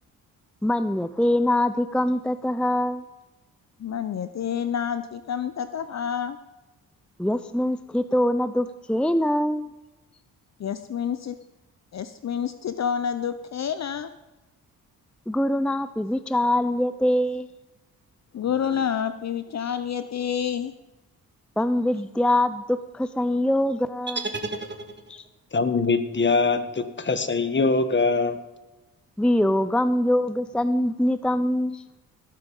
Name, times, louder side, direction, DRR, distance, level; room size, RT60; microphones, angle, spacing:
voice 1, 0.6-3.0 7.2-9.7 15.3-17.5 21.6-24.4 25.1-25.2 29.2-31.8, left 1 dB, 5° left, 13 dB, 0.5 m, -23 dB
voice 2, 3.8-6.4 10.6-11.3 11.9-14.1 18.3-20.7, left 8 dB, 50° left, 12 dB, 0.7 m, -28 dB
sound 1, 24.1-25.4, right 3 dB, 30° right, 1.7 m, -33 dB
voice 3, 25.5-28.4, left 4 dB, 30° left, 10 dB, 1.4 m, -23 dB
18.0 x 8.2 x 5.4 m, 1.1 s
cardioid pair, 65°, 35 cm